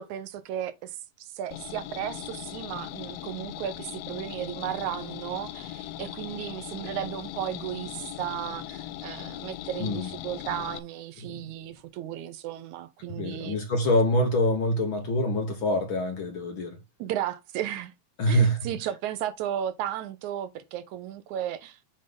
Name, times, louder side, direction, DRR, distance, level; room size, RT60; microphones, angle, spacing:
voice 1, 0.0-13.6 17.0-17.9 18.3-21.8, right 11 dB, 80° right, 2.2 m, -34 dB
sound 1, 1.5-10.8, left 13 dB, 80° left, 1.5 m, -39 dB
voice 2, 9.8-10.1 11.3-11.4 13.2-16.8 18.2-18.6, equal, 55° left, 1.7 m, -25 dB
7.7 x 3.6 x 5.3 m
omnidirectional pair, 3.5 m